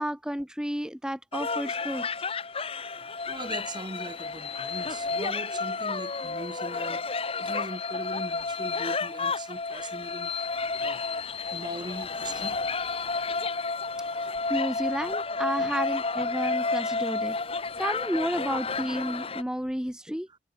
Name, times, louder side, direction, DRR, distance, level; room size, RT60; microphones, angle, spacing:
voice 1, 0.0-2.1 14.1-17.4 17.8-20.3, equal, 5° right, 1.2 m, -31 dB
sound 1, 1.3-19.4, left 4 dB, 30° left, 1.5 m, -31 dB
voice 2, 3.3-7.0 7.4-10.3 10.8-11.0 11.5-12.6 15.6-15.7 20.3-20.4, right 1 dB, 25° right, 3.0 m, -40 dB
head